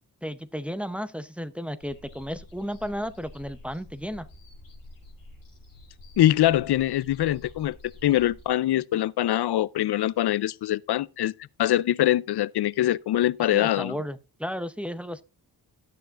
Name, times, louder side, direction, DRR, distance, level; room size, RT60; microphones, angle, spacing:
voice 1, 0.2-4.3 13.5-15.2, equal, 5° right, 0.7 m, -33 dB
sound 1, 1.8-8.5, left 1 dB, 55° left, 5.6 m, -48 dB
voice 2, 6.2-7.8 8.0-11.3 11.6-14.0, left 13 dB, 75° left, 0.5 m, -23 dB
12.5 x 9.2 x 2.5 m
wide cardioid pair, 115°, 39 cm